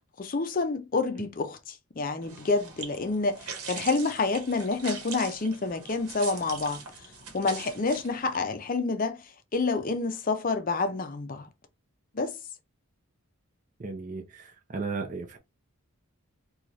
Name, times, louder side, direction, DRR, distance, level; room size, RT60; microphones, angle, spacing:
voice 1, 0.2-7.1 7.3-11.5 12.1-12.4, left 3 dB, 40° left, 0.5 m, -28 dB
sound 1, 2.2-8.4, right 5 dB, 90° right, 1.0 m, -42 dB
voice 2, 13.8-15.4, right 4 dB, 35° right, 0.5 m, -35 dB
3.0 x 2.3 x 3.9 m
head